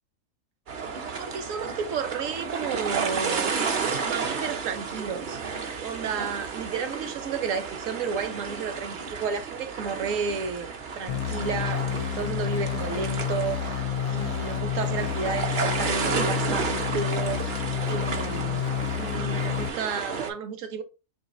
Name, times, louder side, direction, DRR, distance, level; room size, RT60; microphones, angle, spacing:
sound 1, 0.7-20.3, right 5 dB, 50° right, 0.6 m, -32 dB
voice 1, 0.9-3.6 4.0-10.7 11.0-18.6 19.0-20.8, right 6 dB, 65° right, 1.0 m, -32 dB
sound 2, 11.1-19.7, left 10 dB, 80° left, 1.1 m, -30 dB
3.2 x 3.0 x 4.1 m
omnidirectional pair, 1.6 m